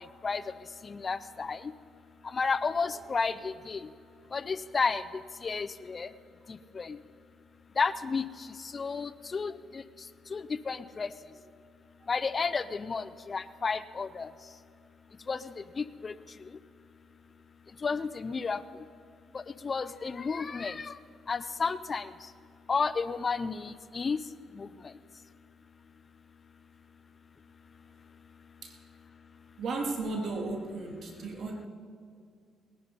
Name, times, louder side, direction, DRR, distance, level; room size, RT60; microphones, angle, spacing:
voice 1, 0.8-1.6 2.3-3.8 4.3-5.0 5.4-6.1 6.7-7.0 7.8-8.2 8.7-9.8 10.3-11.1 12.1-14.3 15.3-16.1 17.8-18.6 19.3-20.9 21.3-22.1 22.7-24.2 24.6-24.7, left 4 dB, 35° left, 14 dB, 0.5 m, -32 dB
voice 2, 29.6-31.7, right 3 dB, 60° right, 2 dB, 2.7 m, -35 dB
19.5 x 11.0 x 5.5 m, 2.2 s
cardioid pair, 90°, 0 cm